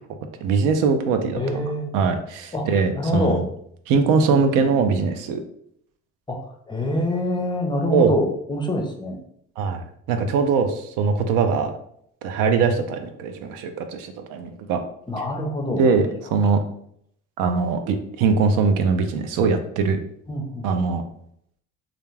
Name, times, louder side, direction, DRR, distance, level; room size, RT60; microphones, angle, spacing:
voice 1, 0.4-1.6 1.9-3.5 3.9-5.4 7.9-8.1 9.6-11.7 12.2-14.8 15.7-16.6 17.4-20.0 20.6-21.0, right 5 dB, 70° right, 7 dB, 0.5 m, -21 dB
voice 2, 1.4-1.9 2.5-2.7 3.0-3.4 4.0-4.9 6.3-6.4 6.7-9.2 15.1-15.8 20.3-20.6, left 1 dB, 15° left, 2 dB, 0.6 m, -25 dB
2.4 x 2.1 x 3.2 m, 0.69 s
supercardioid pair, 75°, 33 cm